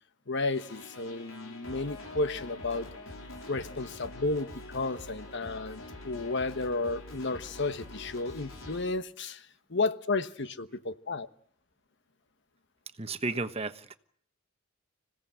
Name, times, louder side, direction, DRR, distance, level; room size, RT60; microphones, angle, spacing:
voice 1, 0.3-2.9 3.5-11.3, left 3 dB, 60° left, 1.2 m, -32 dB
sound 1, 0.5-8.9, left 2 dB, 80° left, 4.8 m, -45 dB
voice 2, 13.0-14.0, right 3 dB, 30° right, 1.2 m, -33 dB
26.5 x 17.0 x 7.8 m
head